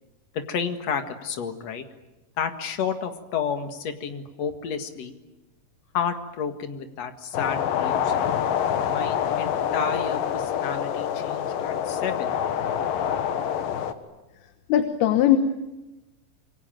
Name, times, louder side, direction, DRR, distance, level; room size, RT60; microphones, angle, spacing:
voice 1, 0.3-1.8 2.4-5.1 5.9-8.1 8.9-12.3, left 7 dB, 50° left, 7 dB, 2.6 m, -31 dB
sound 1, 7.3-13.9, left 9 dB, 70° left, 2.9 m, -26 dB
voice 2, 14.7-15.4, left 12 dB, 85° left, 8 dB, 3.2 m, -19 dB
27.0 x 24.0 x 9.1 m, 1.0 s
omnidirectional pair, 4.4 m